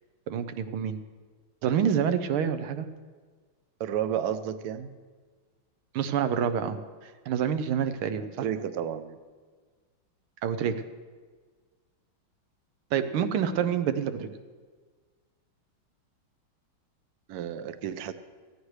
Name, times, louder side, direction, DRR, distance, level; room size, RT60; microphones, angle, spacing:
voice 1, 0.3-1.0 1.6-2.9 5.9-6.8 7.0-8.5 10.4-10.8 12.9-14.3, right 8 dB, 90° right, 9 dB, 1.7 m, -27 dB
voice 2, 3.8-4.9 8.4-9.2 17.3-18.1, right 9 dB, 65° right, 11 dB, 1.0 m, -31 dB
18.0 x 14.5 x 3.3 m, 1.5 s
omnidirectional pair, 2.3 m